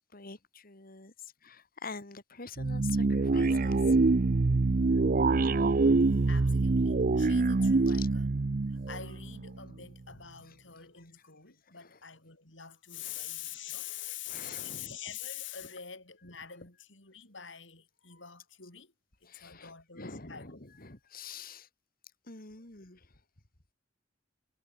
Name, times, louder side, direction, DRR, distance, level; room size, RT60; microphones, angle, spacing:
voice 1, 0.1-4.0 6.1-6.2 7.9-8.1 11.7-12.0 13.0-13.2 14.0-15.0 19.3-21.7 22.2-23.1, left 5 dB, 50° left, 3.0 m, -46 dB
sound 1, 2.6-9.7, right 3 dB, 50° right, 0.6 m, -25 dB
voice 2, 6.3-8.3 8.7-18.9 19.2-20.6, left 9 dB, 75° left, 6.4 m, -45 dB
head